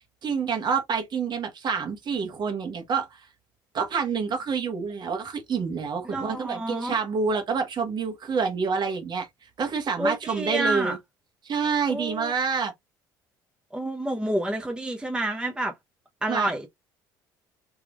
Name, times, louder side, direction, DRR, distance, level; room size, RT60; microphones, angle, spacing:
voice 1, 0.2-3.1 3.7-9.3 9.6-11.0 11.4-12.7 16.3-16.5, right 5 dB, 45° right, 1.3 m, -27 dB
voice 2, 6.0-7.0 10.0-11.0 11.9-12.3 13.7-15.7 16.2-16.7, right 1 dB, 10° right, 0.8 m, -28 dB
3.4 x 3.0 x 2.4 m
hypercardioid pair, 75°, 10 cm